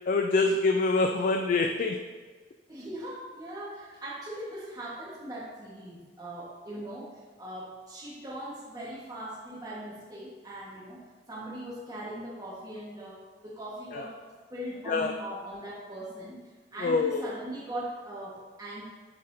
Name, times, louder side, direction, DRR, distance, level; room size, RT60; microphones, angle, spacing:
voice 1, 0.1-2.0 13.9-14.0 14.9-15.1 16.8-17.2, left 3 dB, 50° left, 5 dB, 0.3 m, -25 dB
voice 2, 2.7-14.2 14.5-16.4 16.7-18.8, right 1 dB, 20° right, -7 dB, 1.3 m, -40 dB
10.0 x 4.2 x 2.7 m, 1.5 s
head